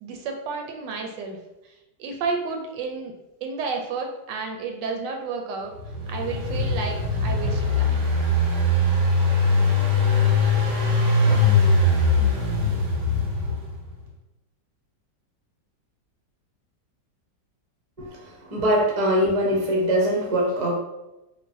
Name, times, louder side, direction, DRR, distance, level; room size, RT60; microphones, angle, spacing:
voice 1, 0.0-1.4 2.0-3.1 3.4-5.7 6.1-8.1, right 4 dB, 80° right, 3 dB, 1.2 m, -31 dB
Engine, 5.8-13.8, left 2 dB, 55° right, 0.9 m, -21 dB
voice 2, 18.5-20.7, equal, 40° right, -3 dB, 0.5 m, -22 dB
3.9 x 2.3 x 2.6 m, 0.95 s
omnidirectional pair, 1.9 m